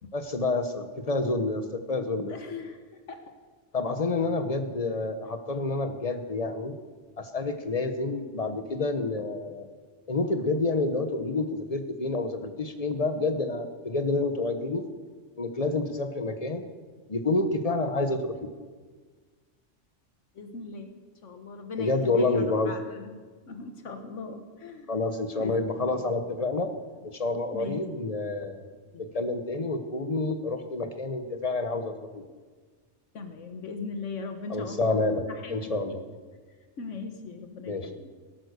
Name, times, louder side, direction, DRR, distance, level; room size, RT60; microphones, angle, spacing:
voice 1, 0.1-2.4 3.7-6.8 7.2-9.7 10.1-14.9 15.4-16.6 17.1-18.5 21.8-22.7 24.9-26.7 27.0-28.6 29.0-32.2 34.5-36.0 37.7-37.9, left 3 dB, 30° left, 8 dB, 1.2 m, -28 dB
voice 2, 2.3-2.8 3.1-3.3 20.3-20.9 21.2-24.9 25.4-25.6 25.9-26.1 27.5-27.8 28.9-29.1 33.1-36.0 36.8-38.1, left 4 dB, 80° left, 7 dB, 1.5 m, -39 dB
17.5 x 11.5 x 6.7 m, 1.5 s
omnidirectional pair, 1.3 m